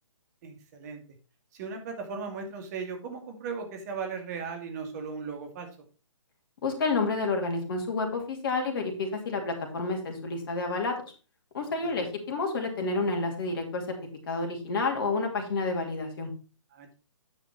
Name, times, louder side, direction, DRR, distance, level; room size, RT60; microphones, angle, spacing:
voice 1, 0.4-1.0 1.5-5.7 11.8-11.9 16.7-17.0, right 5 dB, 35° right, 5 dB, 2.1 m, -37 dB
voice 2, 6.6-11.0 11.5-13.8 14.3-16.3, left 3 dB, 45° left, 3 dB, 2.7 m, -29 dB
9.6 x 5.1 x 4.6 m, 0.35 s
figure-of-eight pair, 140°, 16 cm